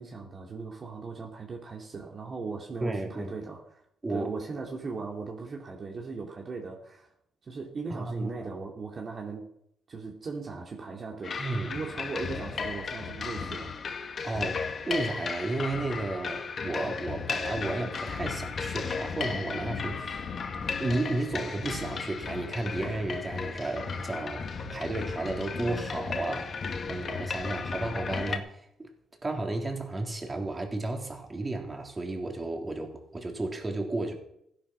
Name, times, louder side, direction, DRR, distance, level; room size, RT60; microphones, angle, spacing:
voice 1, 0.0-3.8 4.1-7.1 7.4-9.5 9.9-11.4 11.7-13.7, right 4 dB, 40° right, 2.6 m, -38 dB
voice 2, 2.8-3.3 4.0-4.3 7.9-8.5 11.4-11.7 14.2-20.3 20.8-28.9 29.2-34.1, right 2 dB, 25° right, 3.5 m, -33 dB
sound 1, 11.2-28.4, left 5 dB, 45° left, 1.8 m, -35 dB
16.0 x 10.0 x 6.3 m
cardioid pair, 90°, 0 cm